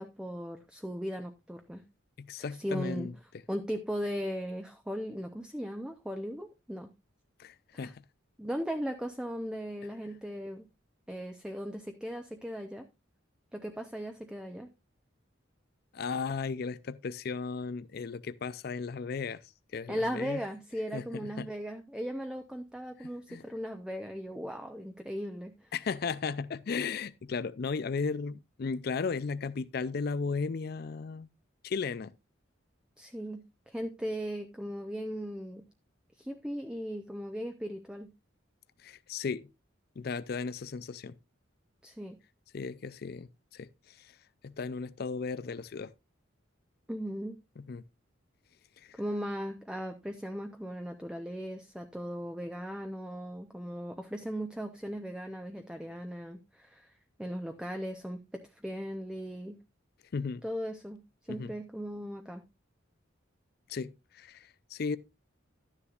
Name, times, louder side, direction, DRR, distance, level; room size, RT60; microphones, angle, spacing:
voice 1, 0.0-1.8 2.6-3.1 3.5-6.9 7.7-7.9 8.4-10.6 11.1-12.9 13.5-14.7 19.9-25.7 33.0-35.6 36.2-38.1 41.8-42.2 46.9-47.4 49.0-56.9 57.2-59.6 60.4-61.0 61.3-62.4, equal, 5° right, 0.6 m, -37 dB
voice 2, 2.2-3.1 7.4-8.0 15.9-19.4 19.7-20.4 20.9-21.5 23.0-23.5 25.7-31.3 31.6-32.1 38.8-39.5 40.0-41.2 42.5-44.2 44.4-45.9 47.6-47.8 48.8-49.0 60.1-60.4 61.3-61.5 63.7-65.0, left 5 dB, 50° left, 0.4 m, -35 dB
12.5 x 9.8 x 2.4 m
head